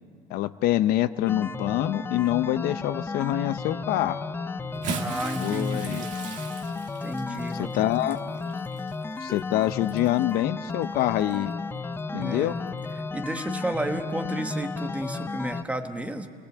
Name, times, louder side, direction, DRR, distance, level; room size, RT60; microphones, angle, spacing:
voice 1, 0.3-4.2 5.4-6.1 7.5-8.2 9.2-11.5 12.1-12.6, left 14 dB, 65° left, 12 dB, 0.6 m, -25 dB
sound 1, 1.3-15.6, left 4 dB, 15° left, 0.6 m, -34 dB
Bathtub (filling or washing) / Splash splatter, 4.6-10.3 11.2-11.4 12.8-12.9, right 5 dB, 45° right, 1.7 m, -39 dB
voice 2, 4.9-6.2 7.0-7.9 12.1-12.6 13.1-16.3, right 1 dB, 10° right, 7 dB, 1.2 m, -32 dB
29.5 x 21.0 x 7.8 m, 2.1 s
cardioid pair, 150°, 17 cm